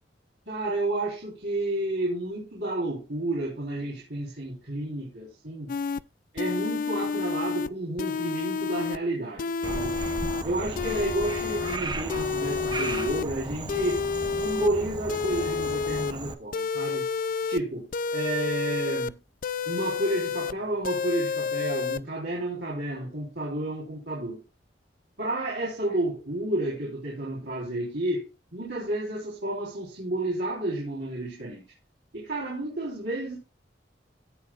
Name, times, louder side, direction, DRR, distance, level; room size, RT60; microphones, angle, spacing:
voice 1, 0.5-5.7 6.3-10.0 10.4-14.1 14.3-17.1 17.5-19.2 19.7-24.4 25.2-31.6 32.1-33.4, right 1 dB, 65° right, 3.9 m, -31 dB
sound 1, 5.7-6.0 6.4-7.7 8.0-9.0 9.4-10.4 10.7-11.8 12.1-13.2 13.7-14.7 15.1-16.1 16.5-17.6 17.9-19.1 19.4-20.5 20.8-22.0, left 5 dB, 50° left, 0.4 m, -30 dB
Frog, 9.6-16.3, right 2 dB, 25° right, 0.9 m, -35 dB
17.5 x 6.7 x 2.4 m
head